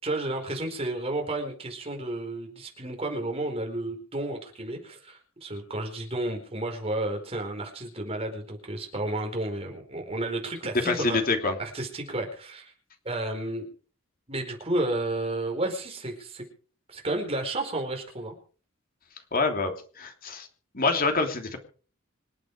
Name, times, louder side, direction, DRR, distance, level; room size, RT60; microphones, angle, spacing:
voice 1, 0.0-11.2 11.6-12.7 13.0-13.7 14.3-16.4 16.9-18.3, right 2 dB, 30° right, 3 dB, 4.6 m, -32 dB
voice 2, 10.8-11.5 19.3-20.5 20.7-21.6, left 3 dB, 45° left, 5 dB, 3.0 m, -26 dB
26.0 x 8.8 x 4.9 m, 0.42 s
head